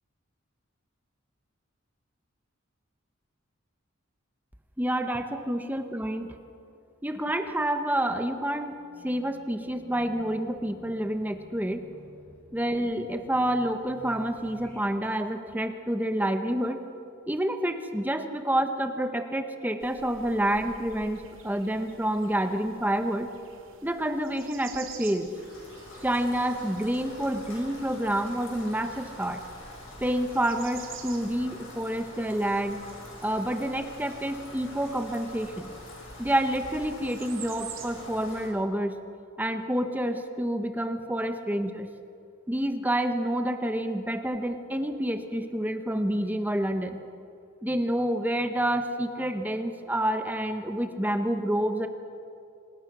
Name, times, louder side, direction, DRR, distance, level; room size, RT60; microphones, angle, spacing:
voice 1, 4.8-6.4 7.0-8.8 9.0-11.9 12.5-16.8 17.3-23.3 23.8-25.3 26.0-29.4 30.0-32.8 33.2-35.7 36.2-39.0 39.4-41.9 42.5-47.0 47.6-51.9, right 1 dB, 10° right, 7 dB, 1.0 m, -28 dB
Race car auto racing / Alarm, 8.6-14.8, right 1 dB, 10° left, 7.8 m, -51 dB
sound 1, 19.8-38.1, right 6 dB, 75° right, 2.9 m, -49 dB
Rain, 25.3-38.5, left 1 dB, 75° left, 6.7 m, -46 dB
26.5 x 19.0 x 6.1 m, 2.4 s
head